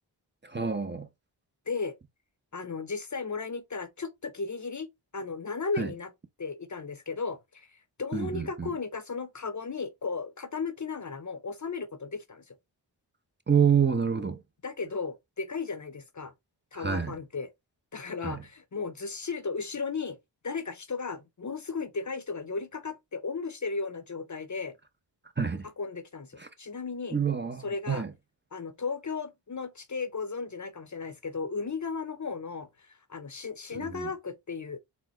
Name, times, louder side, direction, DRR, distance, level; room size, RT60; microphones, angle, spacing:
voice 1, 0.4-1.1 5.8-5.9 8.1-8.7 13.5-14.4 16.7-17.1 18.2-18.4 25.4-25.7 26.4-26.5 27.1-28.1 33.7-34.1, right 7 dB, 25° right, 0.8 m, -27 dB
voice 2, 2.5-6.1 6.4-12.5 14.6-16.3 16.7-17.5 17.9-20.2 20.4-24.7 25.8-27.2 27.6-28.0 28.5-34.8, left 4 dB, 40° left, 0.8 m, -35 dB
4.2 x 2.2 x 4.3 m
cardioid pair, 45°, 45 cm